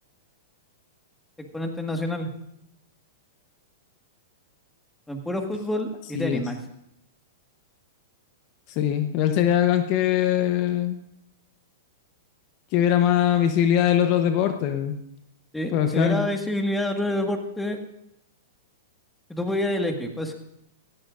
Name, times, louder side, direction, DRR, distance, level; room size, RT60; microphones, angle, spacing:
voice 1, 1.5-2.3 5.1-6.6 15.5-17.8 19.3-20.3, left 1 dB, 5° left, 4 dB, 1.7 m, -27 dB
voice 2, 8.7-11.0 12.7-15.0 15.7-16.3, left 10 dB, 45° left, 7 dB, 1.0 m, -22 dB
17.5 x 14.5 x 2.6 m, 0.77 s
hypercardioid pair, 120°, 0 cm